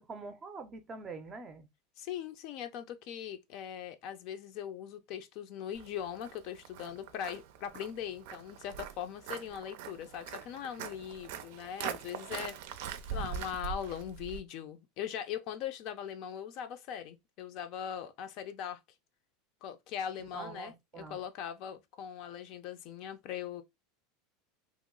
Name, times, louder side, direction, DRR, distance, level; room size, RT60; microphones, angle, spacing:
voice 1, 0.0-1.7 20.2-21.2, right 4 dB, 20° right, 0.5 m, -45 dB
voice 2, 2.0-12.6 13.1-18.8 19.6-23.6, left 9 dB, 45° left, 0.5 m, -40 dB
Walk footsteps, 5.8-14.4, right 8 dB, 65° right, 0.5 m, -42 dB
3.0 x 2.0 x 3.7 m
supercardioid pair, 160°, 0 cm